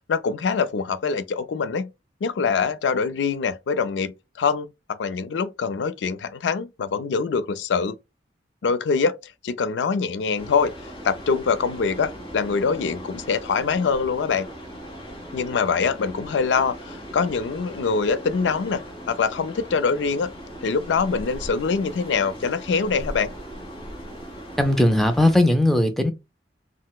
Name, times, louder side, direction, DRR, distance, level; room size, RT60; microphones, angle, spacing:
voice 1, 0.1-1.9 2.2-4.1 4.4-8.0 8.6-10.7 11.0-14.5 15.3-20.3 20.6-23.3, left 5 dB, 85° left, 0.4 m, -24 dB
sound 1, 10.4-25.4, equal, 25° left, 1.3 m, -38 dB
voice 2, 24.6-26.1, left 1 dB, ahead, 0.4 m, -18 dB
3.8 x 2.0 x 2.3 m
head